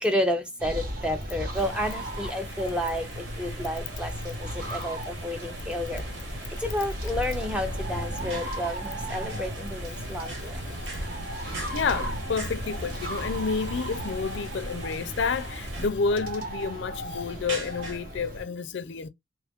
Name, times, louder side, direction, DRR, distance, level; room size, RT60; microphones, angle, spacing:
voice 1, 0.0-6.0 6.6-10.5, left 1 dB, 5° right, 0.5 m, -31 dB
sound 1, 0.6-18.4, right 1 dB, 45° right, 1.0 m, -37 dB
sound 2, 1.6-15.9, right 1 dB, 65° right, 1.2 m, -38 dB
sound 3, 7.9-18.0, right 2 dB, 85° right, 1.4 m, -44 dB
voice 2, 11.4-19.1, left 5 dB, 70° left, 0.4 m, -30 dB
3.0 x 2.4 x 3.5 m
head